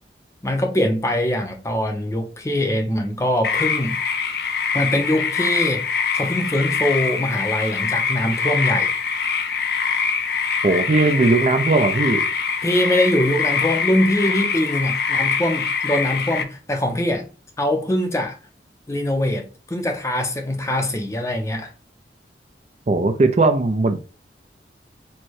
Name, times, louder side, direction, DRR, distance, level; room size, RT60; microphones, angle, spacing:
voice 1, 0.4-4.0 4.7-5.9 6.1-8.9 12.6-17.3 17.6-18.4 18.9-21.7, left 1 dB, 15° left, 0.6 m, -22 dB
sound 1, 3.4-16.4, left 6 dB, 65° left, 0.5 m, -24 dB
voice 2, 10.6-12.2 22.9-24.0, right 3 dB, 40° right, 0.4 m, -18 dB
4.4 x 2.2 x 4.6 m
head